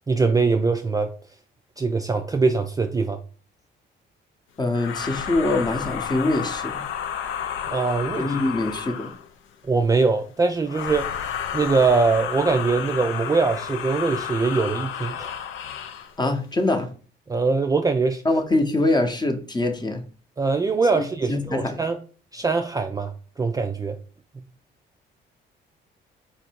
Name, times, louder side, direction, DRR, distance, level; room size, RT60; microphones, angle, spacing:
voice 1, 0.1-1.1 1.8-3.2 7.7-8.4 9.6-15.3 17.3-18.2 20.4-22.0 22.3-24.0, right 4 dB, 20° right, 0.3 m, -22 dB
voice 2, 4.6-6.8 8.2-9.1 16.2-16.9 18.2-20.0 20.9-21.0 21.3-21.8, left 2 dB, 20° left, 0.8 m, -24 dB
sound 1, 4.7-9.3 10.7-16.1, left 8 dB, 75° left, 0.6 m, -31 dB
4.3 x 2.6 x 4.4 m
cardioid pair, 90°, 20 cm